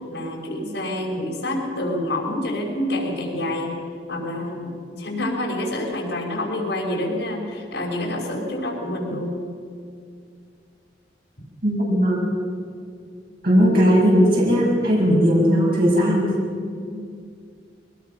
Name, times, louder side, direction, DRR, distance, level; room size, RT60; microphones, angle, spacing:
voice 1, 0.0-3.7 4.1-9.4 16.8-17.0, left 1 dB, 70° left, -1 dB, 5.5 m, -27 dB
voice 2, 11.6-12.4 13.4-16.3, equal, 55° right, -4 dB, 7.0 m, -18 dB
22.5 x 21.0 x 5.9 m, 2.3 s
head